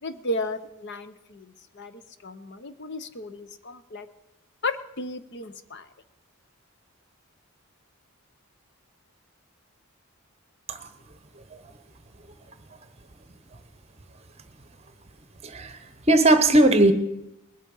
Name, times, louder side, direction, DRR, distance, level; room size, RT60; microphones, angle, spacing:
voice 1, 0.0-4.1 4.6-5.9, left 1 dB, 55° left, 11 dB, 0.7 m, -34 dB
voice 2, 15.4-16.9, right 1 dB, 30° right, 10 dB, 1.0 m, -19 dB
20.5 x 8.3 x 5.5 m, 0.88 s
head